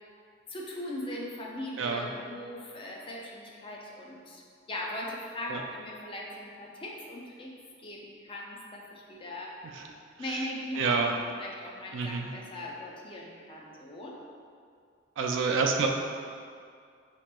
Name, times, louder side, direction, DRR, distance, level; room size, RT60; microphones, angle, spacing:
voice 1, 0.5-4.4 4.7-7.5 7.8-9.7 10.2-14.2, left 1 dB, 25° left, -1 dB, 0.4 m, -39 dB
voice 2, 1.8-2.1 5.5-5.6 10.8-11.1 11.9-12.3 15.2-15.9, right 5 dB, 65° right, 2 dB, 0.3 m, -27 dB
4.8 x 2.9 x 2.2 m, 2.2 s
head